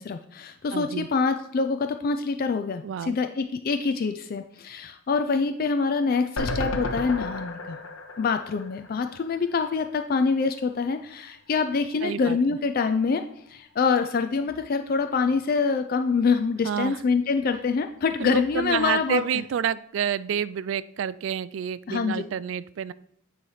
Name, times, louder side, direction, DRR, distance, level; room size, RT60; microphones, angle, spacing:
voice 1, 0.0-7.8 8.2-13.2 13.5-19.2 21.9-22.2, left 5 dB, 45° left, 8 dB, 0.3 m, -25 dB
voice 2, 0.7-1.1 2.8-3.2 12.0-12.6 16.6-17.0 18.2-22.9, right 8 dB, 70° right, 17 dB, 0.3 m, -29 dB
sound 1, 6.4-9.6 10.0-10.1 10.3-10.4, left 2 dB, 80° left, 0.9 m, -33 dB
9.2 x 3.2 x 5.5 m, 0.71 s
head